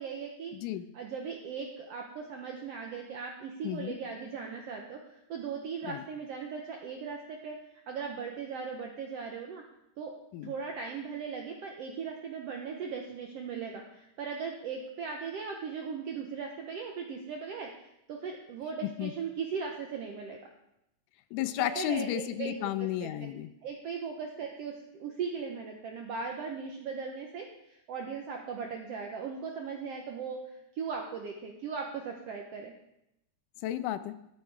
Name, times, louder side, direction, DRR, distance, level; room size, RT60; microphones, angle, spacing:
voice 1, 0.0-0.5 0.9-7.6 7.9-9.6 10.0-10.1 10.4-20.4 21.5-22.5 22.8-23.1 23.6-24.7 25.0-32.7, right 5 dB, 75° right, 2 dB, 1.4 m, -38 dB
voice 2, 0.5-0.9 3.6-3.9 5.9-6.0 10.3-10.5 18.8-19.1 21.3-23.5 33.6-34.2, left 13 dB, 80° left, 12 dB, 2.0 m, -33 dB
13.0 x 6.4 x 4.7 m, 0.82 s
omnidirectional pair, 3.8 m